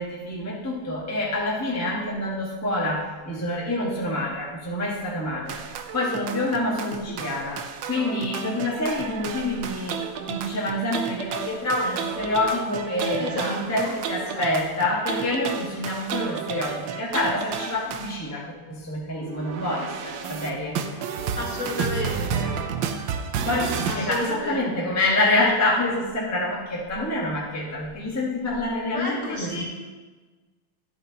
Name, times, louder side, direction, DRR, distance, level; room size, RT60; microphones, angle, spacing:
voice 1, 0.0-5.6 5.9-20.8 23.4-29.6, left 1 dB, 10° left, -4 dB, 1.1 m, -27 dB
sound 1, 5.5-18.2 19.2-24.3, right 7 dB, 75° right, 1.3 m, -32 dB
voice 2, 13.2-14.0 14.3-14.5 21.4-22.5 23.9-24.9 28.9-29.6, left 1 dB, 40° left, -3 dB, 1.5 m, -32 dB
11.5 x 7.7 x 2.8 m, 1.3 s
omnidirectional pair, 2.3 m